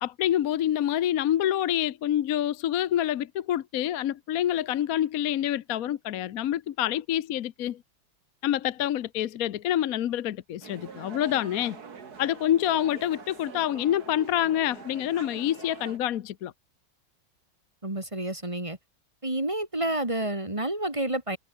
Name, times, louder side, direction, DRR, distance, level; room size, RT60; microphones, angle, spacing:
voice 1, 0.0-7.8 8.4-11.8 12.2-16.5, left 11 dB, 60° left, 1.0 m, -27 dB
sound 1, 10.6-16.0, right 6 dB, 50° right, 2.5 m, -44 dB
voice 2, 17.8-18.8 19.2-21.4, right 1 dB, 15° right, 2.8 m, -29 dB
omnidirectional pair, 2.2 m